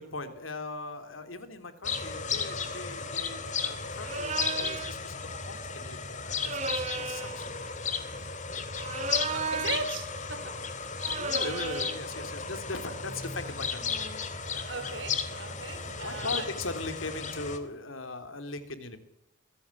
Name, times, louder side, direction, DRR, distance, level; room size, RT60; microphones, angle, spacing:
voice 1, 0.0-6.5 6.9-8.1 11.1-14.0 16.0-19.0, left 2 dB, 85° left, 3.2 m, -39 dB
sound 1, 1.8-17.6, left 5 dB, 35° left, 2.4 m, -34 dB
sound 2, 4.0-5.0 6.4-7.4 8.8-10.0 11.0-12.0, right 4 dB, 35° right, 0.9 m, -34 dB
voice 2, 9.3-10.6 10.9-11.3 14.5-16.5, right 3 dB, 65° right, 3.3 m, -38 dB
23.5 x 16.0 x 8.5 m
head